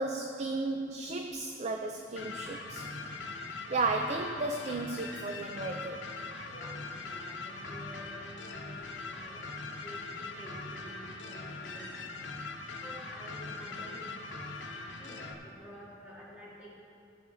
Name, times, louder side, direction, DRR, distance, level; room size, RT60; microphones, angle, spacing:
voice 1, 0.0-2.9 3.7-6.0, right 3 dB, 35° right, 4 dB, 0.4 m, -34 dB
sound 1, 2.2-15.3, left 3 dB, 70° left, 0.9 m, -41 dB
voice 2, 6.5-12.1 12.8-14.2 15.0-16.8, equal, 10° right, -8 dB, 2.0 m, -50 dB
16.0 x 6.8 x 3.9 m, 2.6 s
head